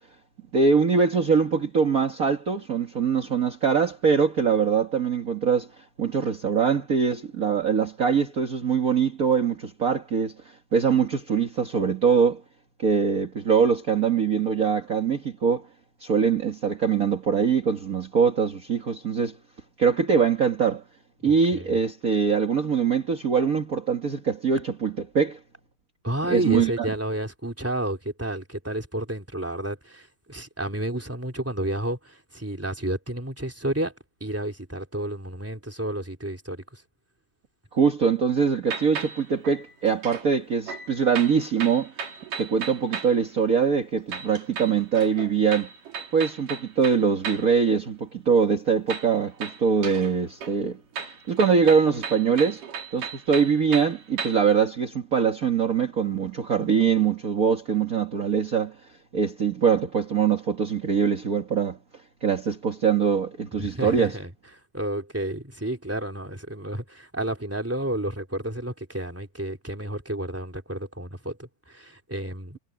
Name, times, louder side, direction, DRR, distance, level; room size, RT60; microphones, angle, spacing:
voice 1, 0.5-5.7 6.0-12.4 12.8-15.7 16.0-19.4 19.8-20.8 21.2-25.4 26.3-26.9 37.7-41.9 42.4-45.7 46.1-52.6 52.9-58.7 59.1-61.8 62.2-64.2, right 6 dB, 40° right, 1.2 m, -23 dB
voice 2, 21.2-21.8 26.0-33.9 34.2-36.8 63.6-64.3 64.7-72.6, right 1 dB, 5° right, 2.9 m, -31 dB
sound 1, 38.7-40.3 40.7-43.2 44.1-47.6 48.9-50.2 50.4-54.6, right 6 dB, 65° right, 4.3 m, -36 dB
omnidirectional pair, 4.0 m